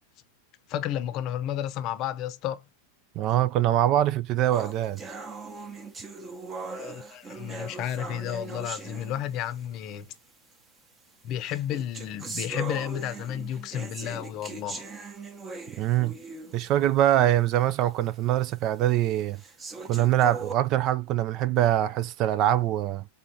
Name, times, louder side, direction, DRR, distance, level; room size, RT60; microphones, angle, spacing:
voice 1, 0.7-2.6 6.7-10.1 11.2-14.8, left 11 dB, 45° left, 0.6 m, -32 dB
voice 2, 3.2-5.0 15.8-16.1 16.5-19.4 19.9-23.1, right 12 dB, 45° right, 0.3 m, -23 dB
sound 1, 4.5-9.7 10.5-10.6 11.4-16.7 17.1-17.2 17.7-17.8 18.5-18.6 19.4-20.5, right 3 dB, 20° right, 0.9 m, -39 dB
3.8 x 3.7 x 2.7 m
hypercardioid pair, 120°, 0 cm